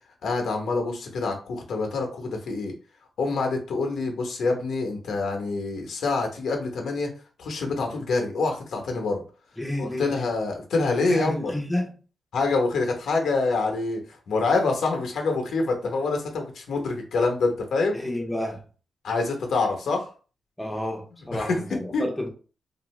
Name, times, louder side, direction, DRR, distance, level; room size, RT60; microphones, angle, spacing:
voice 1, 0.2-2.7 3.2-7.1 7.4-9.2 9.8-11.5 12.3-14.0 14.3-18.0 19.0-20.1 21.3-21.6 21.9-22.1, left 3 dB, 75° left, 0.8 m, -26 dB
voice 2, 9.6-10.3 11.1-11.9 17.9-18.6 20.6-22.3, left 1 dB, 5° left, 0.6 m, -30 dB
2.7 x 2.5 x 3.1 m
wide cardioid pair, 130°, 0 cm